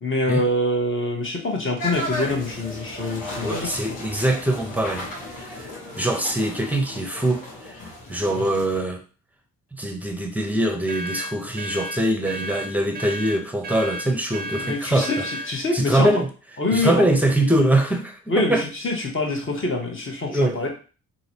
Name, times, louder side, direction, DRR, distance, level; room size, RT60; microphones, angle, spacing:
voice 1, 0.0-4.0 14.6-16.1 16.6-17.0 18.3-20.7, left 2 dB, 30° left, 1 dB, 1.2 m, -25 dB
sound 1, 1.8-8.8, left 1 dB, 60° left, 1.5 m, -34 dB
voice 2, 3.4-5.1 5.3-5.7 6.0-7.7 8.1-9.0 9.7-15.3 15.7-16.3 16.7-18.7 20.3-20.6, right 1 dB, 5° right, 3 dB, 0.8 m, -23 dB
sound 2, 10.9-15.5, right 1 dB, 25° right, 0.4 m, -33 dB
2.8 x 2.7 x 2.9 m, 0.37 s
hypercardioid pair, 45°, 39 cm